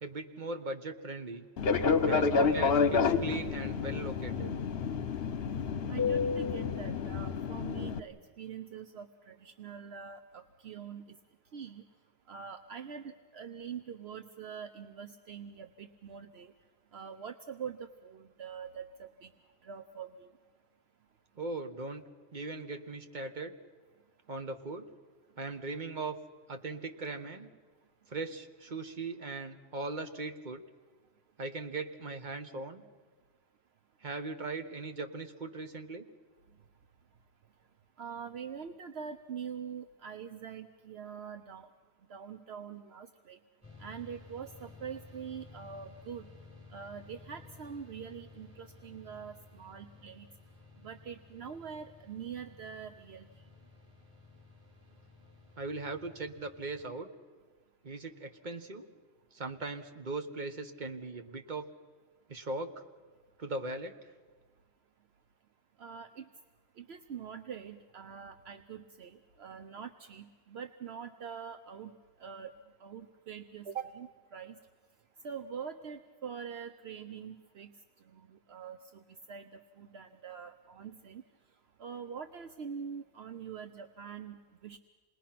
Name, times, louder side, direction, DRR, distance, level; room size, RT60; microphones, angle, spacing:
voice 1, 0.0-1.4 2.1-4.5 21.4-22.0 22.3-23.5 24.3-24.9 25.4-26.2 26.5-27.5 28.1-30.6 31.4-32.8 34.0-36.0 55.6-57.1 57.8-58.8 59.3-61.7 62.3-62.8 63.4-63.9, right 3 dB, 45° right, 6 dB, 1.4 m, -39 dB
Fixed-wing aircraft airplane, 1.6-8.0, left 5 dB, 65° left, 1.1 m, -29 dB
voice 2, 5.9-11.0 11.5-11.8 12.3-16.5 16.9-19.3 19.6-20.3 38.0-41.7 42.1-43.4 43.8-46.3 46.7-50.3 50.8-53.3 65.8-66.2 66.8-71.9 72.2-72.5 72.8-74.6 75.2-77.7 78.1-79.0 79.3-79.5 79.8-81.2 81.8-84.8, right 7 dB, 70° right, 8 dB, 1.0 m, -44 dB
sound 1, 43.6-56.9, left 3 dB, 10° left, 7.4 m, -55 dB
27.5 x 20.5 x 5.9 m, 1.5 s
omnidirectional pair, 1.1 m